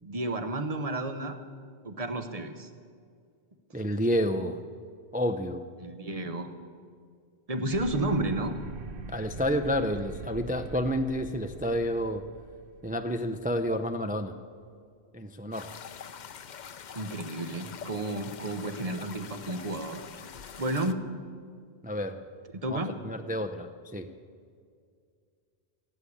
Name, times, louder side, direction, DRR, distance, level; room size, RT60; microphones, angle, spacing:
voice 1, 0.0-1.4 1.8-2.7 5.8-6.5 7.5-8.5 16.9-20.0 20.6-21.0 22.6-22.9, right 2 dB, 35° right, 8 dB, 1.1 m, -31 dB
voice 2, 3.7-4.6 5.1-5.6 9.1-12.3 12.8-14.3 15.1-15.8 21.8-22.2 22.7-24.1, equal, 10° right, 6 dB, 0.4 m, -30 dB
sound 1, 7.7-14.2, right 4 dB, 60° right, 0.9 m, -43 dB
sound 2, 15.5-20.9, left 7 dB, 50° left, 0.7 m, -45 dB
17.0 x 8.3 x 8.5 m, 2.2 s
omnidirectional pair, 1.1 m